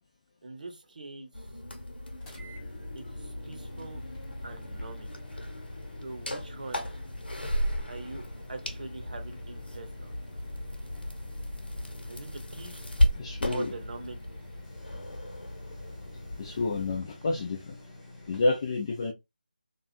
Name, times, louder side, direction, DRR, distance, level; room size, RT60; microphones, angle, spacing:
voice 1, 0.4-1.5 2.9-4.0 4.4-5.1 6.0-6.9 7.9-8.2 8.5-10.1 12.1-12.9 13.5-14.2, right 3 dB, 55° right, 0.8 m, -43 dB
sound 1, 1.3-17.0, left 1 dB, 80° left, 1.0 m, -35 dB
sound 2, 2.2-18.4, left 2 dB, 10° left, 0.7 m, -49 dB
voice 2, 13.2-13.7 16.4-17.8 18.3-19.1, left 3 dB, 30° left, 0.4 m, -29 dB
2.7 x 2.3 x 2.4 m
figure-of-eight pair, 160°, 5 cm